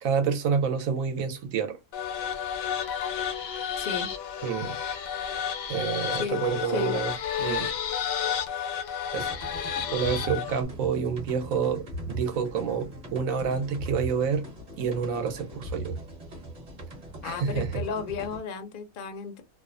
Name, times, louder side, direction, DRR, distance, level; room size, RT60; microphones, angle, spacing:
voice 1, 0.0-1.8 4.4-4.8 5.7-7.1 7.4-7.7 9.1-9.3 9.9-14.5 14.8-16.0 17.2-17.7, right 6 dB, 80° right, 1.1 m, -28 dB
sound 1, 1.9-10.6, left 8 dB, 85° left, 1.0 m, -31 dB
voice 2, 3.8-4.1 6.1-6.4 6.6-7.0 17.2-19.4, left 6 dB, 60° left, 0.5 m, -33 dB
sound 2, 9.2-18.4, right 2 dB, 35° right, 0.9 m, -39 dB
2.6 x 2.1 x 2.4 m
omnidirectional pair, 1.4 m